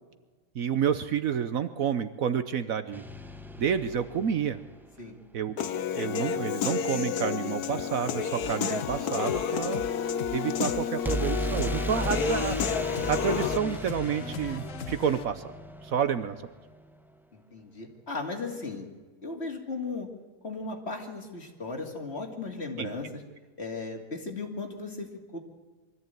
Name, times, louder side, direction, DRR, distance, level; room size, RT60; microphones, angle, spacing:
voice 1, 0.5-3.0 3.6-4.6 5.3-5.6 5.9-9.9 10.3-12.6 13.1-15.4 15.8-16.4 22.8-22.9, right 7 dB, 60° right, 11 dB, 1.2 m, -29 dB
sound 1, 2.9-4.9 11.0-16.8, right 1 dB, ahead, 0.5 m, -36 dB
Human voice / Piano, 5.6-13.6, left 7 dB, 75° left, 1.4 m, -30 dB
sound 2, 8.4-15.3, left 9 dB, 60° left, 1.1 m, -40 dB
voice 2, 17.5-18.9 19.2-20.1 20.4-23.1 23.6-25.4, left 3 dB, 40° left, 2 dB, 2.8 m, -36 dB
23.5 x 14.0 x 9.1 m, 1.3 s
omnidirectional pair, 1.7 m